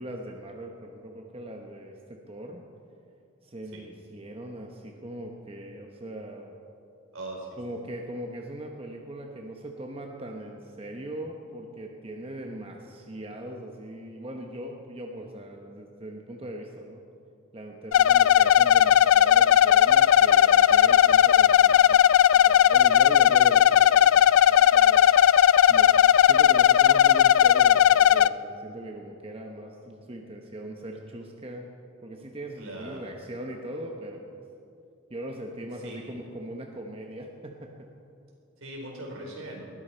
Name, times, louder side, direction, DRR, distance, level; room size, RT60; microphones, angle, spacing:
voice 1, 0.0-2.6 3.4-6.6 7.6-17.0 17.5-25.1 25.7-25.9 26.2-31.7 32.0-34.4 35.1-37.9, right 1 dB, 25° right, 2 dB, 0.9 m, -40 dB
voice 2, 7.1-7.6 32.6-33.0 35.8-36.2 38.6-39.7, right 1 dB, 75° right, -1 dB, 3.9 m, -40 dB
sound 1, 17.9-28.3, left 10 dB, 70° left, 0.3 m, -17 dB
20.0 x 14.0 x 4.4 m, 2.6 s
head